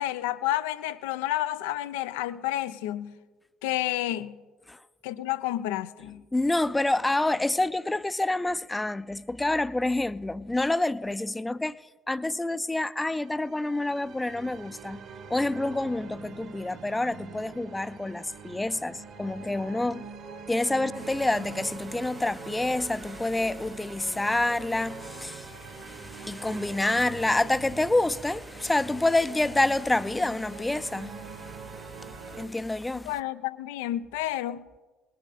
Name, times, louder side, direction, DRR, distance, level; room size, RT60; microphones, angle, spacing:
voice 1, 0.0-3.1 3.6-4.4 5.0-6.2 33.1-34.6, left 14 dB, 75° left, 0.5 m, -30 dB
voice 2, 6.3-15.0 15.3-20.1 20.5-33.1, left 2 dB, 15° left, 0.5 m, -28 dB
sound 1, 13.1-32.5, right 5 dB, 60° right, 1.7 m, -43 dB
19.5 x 10.0 x 4.2 m
hypercardioid pair, 55°, 0 cm